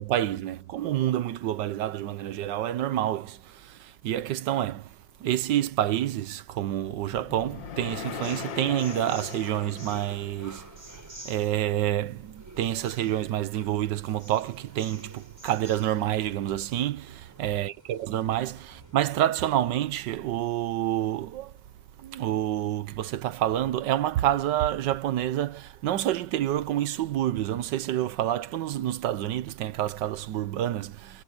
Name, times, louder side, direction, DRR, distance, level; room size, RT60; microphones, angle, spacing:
voice 1, 0.0-10.7 11.2-21.5 22.0-31.2, right 12 dB, 80° right, 1.4 m, -28 dB
sound 1, 6.7-11.0, left 8 dB, 85° left, 1.9 m, -40 dB
sound 2, 7.9-19.2, right 1 dB, 10° right, 5.4 m, -49 dB
omnidirectional pair, 1.9 m